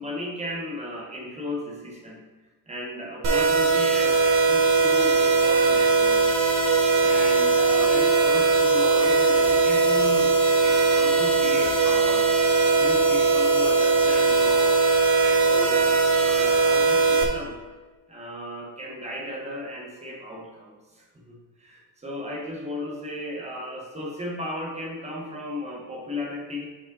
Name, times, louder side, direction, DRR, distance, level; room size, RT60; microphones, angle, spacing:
voice 1, 0.0-2.3 2.7-6.3 7.0-10.3 10.6-12.3 12.8-14.8 15.2-17.6 18.1-26.7, left 1 dB, 15° right, -2 dB, 1.2 m, -35 dB
sound 1, 3.2-17.2, right 4 dB, 45° right, 1.0 m, -20 dB
5.3 x 5.2 x 4.0 m, 1.3 s
cardioid pair, 150°, 39 cm